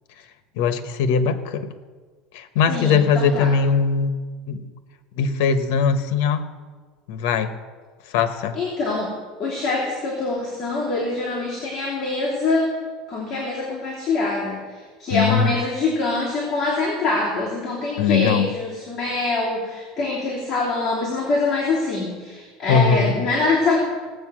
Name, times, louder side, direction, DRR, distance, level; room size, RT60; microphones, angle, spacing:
voice 1, 0.6-1.7 2.3-4.6 5.2-6.4 7.1-7.5 8.1-8.6 15.1-15.5 18.0-18.5 22.7-23.1, left 6 dB, 70° left, 10 dB, 1.1 m, -20 dB
voice 2, 2.7-3.5 8.5-9.1 9.4-12.7 13.1-23.8, left 3 dB, 25° left, -6 dB, 3.0 m, -24 dB
18.0 x 8.0 x 6.2 m, 1.5 s
cardioid pair, 175°, 0 cm